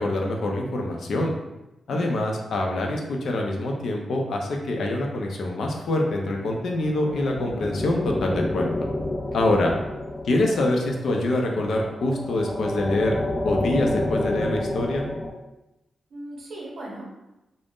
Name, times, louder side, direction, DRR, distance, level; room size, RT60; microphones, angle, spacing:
voice 1, 0.0-1.3 1.9-8.9 9.3-9.7 10.2-13.2 13.4-15.0, left 2 dB, 75° left, 1 dB, 0.5 m, -25 dB
sound 1, 6.5-15.3, left 1 dB, 15° left, 0.3 m, -30 dB
voice 2, 16.1-17.0, right 1 dB, 80° right, -3 dB, 0.8 m, -38 dB
2.5 x 2.0 x 3.5 m, 0.96 s
wide cardioid pair, 110°, 0 cm